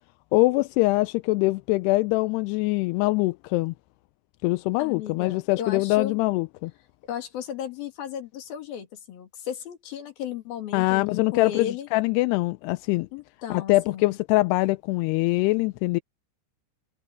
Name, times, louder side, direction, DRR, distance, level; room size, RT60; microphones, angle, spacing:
voice 1, 0.3-3.7 4.4-6.7 10.7-13.1 13.5-16.0, left 21 dB, 80° left, 2.5 m, -23 dB
voice 2, 4.8-6.2 7.1-11.9 13.1-14.2, left 9 dB, 60° left, 4.2 m, -35 dB
omnidirectional pair, 5.0 m